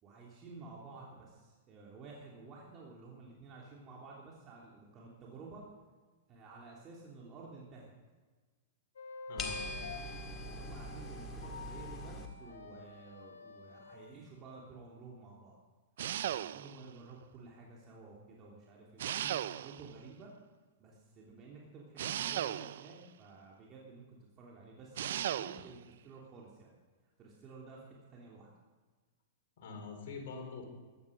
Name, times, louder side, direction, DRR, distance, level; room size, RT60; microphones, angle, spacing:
voice 1, 0.0-5.6 6.3-7.9 10.5-15.6 16.2-20.3 20.8-26.7 27.2-28.5, right 3 dB, 30° right, -3 dB, 3.2 m, -52 dB
sound 1, 9.0-14.1, left 3 dB, 85° left, 2.6 m, -49 dB
voice 2, 9.3-9.7 29.6-30.6, left 4 dB, 60° left, 1 dB, 4.4 m, -44 dB
sound 2, 9.4-12.3, left 1 dB, 25° left, 1.8 m, -42 dB
sound 3, 16.0-16.9 19.0-20.0 22.0-23.0 25.0-25.7, right 11 dB, 70° right, 0.5 m, -36 dB
15.5 x 12.0 x 5.3 m, 1.4 s
hypercardioid pair, 125°, 0 cm